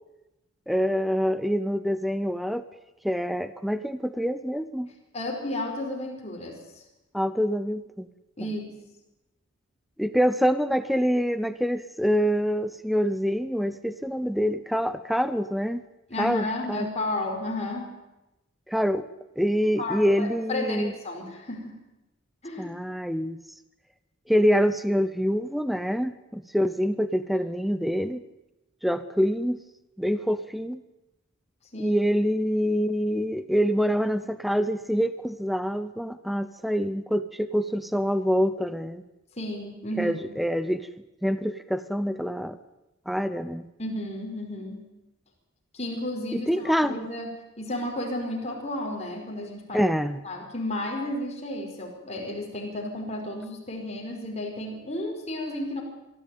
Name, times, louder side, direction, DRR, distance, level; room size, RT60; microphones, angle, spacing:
voice 1, 0.7-2.6 3.0-4.9 7.1-8.1 10.0-15.8 16.2-16.9 18.7-19.1 19.4-20.9 22.6-23.4 24.3-28.2 28.8-29.6 30.0-30.8 31.8-39.0 40.0-40.9 41.2-42.6 43.1-43.7 46.3-47.0 49.7-50.2, equal, ahead, 13 dB, 0.6 m, -26 dB
voice 2, 5.1-6.8 8.4-8.8 16.1-18.0 19.8-21.7 22.4-22.7 31.7-32.0 39.3-40.2 43.8-44.9 45.7-47.3 47.6-49.8 50.2-55.8, left 1 dB, 30° left, 1 dB, 4.9 m, -32 dB
23.5 x 14.0 x 9.4 m, 0.97 s
head